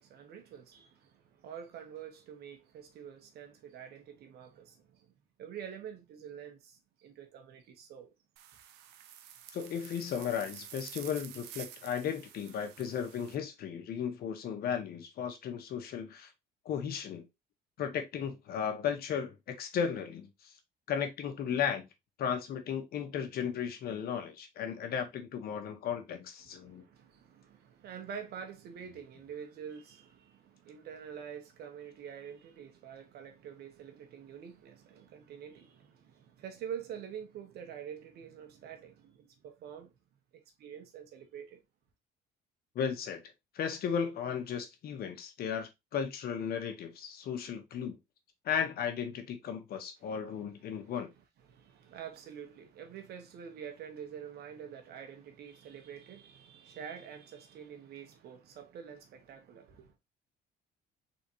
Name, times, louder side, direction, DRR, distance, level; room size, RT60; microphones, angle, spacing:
voice 1, 0.0-5.1 5.4-8.1 26.4-39.9 40.3-41.6 50.0-50.4 50.8-50.9 51.5-59.9, right 8 dB, 70° right, 1.4 m, -47 dB
sound 1, 8.4-13.4, right 10 dB, 90° right, 0.7 m, -50 dB
voice 2, 9.5-16.3 16.6-17.2 17.8-20.5 20.9-21.9 22.2-26.8 42.7-43.2 43.5-48.0 48.4-51.1, left 7 dB, 65° left, 1.3 m, -35 dB
4.2 x 3.9 x 3.0 m
cardioid pair, 110°, 17 cm